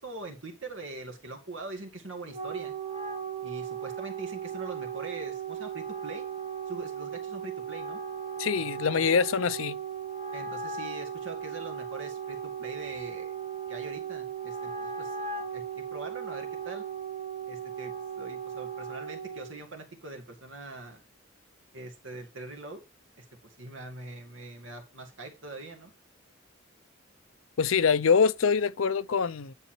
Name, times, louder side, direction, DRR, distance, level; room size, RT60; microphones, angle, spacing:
voice 1, 0.0-2.7 3.4-6.3 6.7-8.0 10.3-13.3 13.7-16.8 17.5-21.0 21.7-22.8 23.2-25.9, right 2 dB, 70° right, 2.2 m, -43 dB
Wind instrument woodwind instrument, 2.1-19.6, right 7 dB, 35° right, 2.0 m, -37 dB
voice 2, 8.4-9.8 27.6-29.5, left 6 dB, 85° left, 0.6 m, -24 dB
9.9 x 4.2 x 4.4 m
head